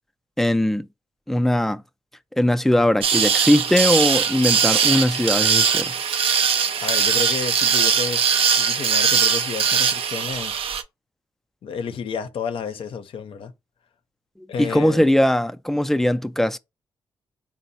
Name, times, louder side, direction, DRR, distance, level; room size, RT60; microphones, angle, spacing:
voice 1, 0.4-0.9 1.3-1.8 2.4-5.9 14.6-16.6, left 1 dB, 5° left, 0.3 m, -20 dB
sound 1, 3.0-10.8, right 7 dB, 80° right, 0.5 m, -20 dB
voice 2, 6.8-10.7 11.6-13.5 14.5-15.1, left 6 dB, 70° left, 0.5 m, -31 dB
3.8 x 2.0 x 4.1 m
cardioid pair, 70°, 9 cm